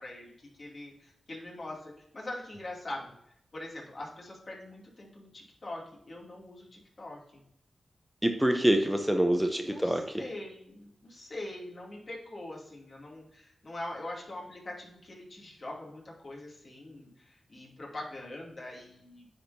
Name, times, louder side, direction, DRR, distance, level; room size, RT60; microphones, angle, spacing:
voice 1, 0.0-3.1 3.5-7.4 9.3-19.3, left 1 dB, 50° left, -2 dB, 2.5 m, -43 dB
voice 2, 8.2-10.2, right 1 dB, 5° right, 5 dB, 0.7 m, -26 dB
9.7 x 4.3 x 2.7 m, 0.76 s
cardioid pair, 65°, 0 cm